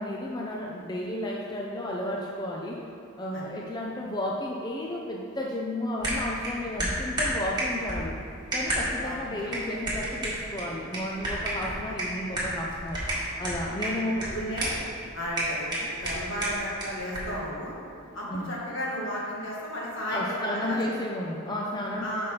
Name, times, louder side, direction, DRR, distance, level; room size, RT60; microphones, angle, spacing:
voice 1, 0.0-2.8 3.2-8.2 8.5-13.0 13.4-14.1 18.3-18.5 20.1-22.0, left 1 dB, 20° left, -2 dB, 0.5 m, -32 dB
sound 1, 6.0-17.4, right 1 dB, 20° right, 1.8 m, -32 dB
voice 2, 9.0-9.6 11.9-12.0 13.8-14.8 15.1-17.7 18.1-20.8 22.0-22.3, equal, 60° left, -5 dB, 1.7 m, -34 dB
6.0 x 5.0 x 5.6 m, 2.5 s
head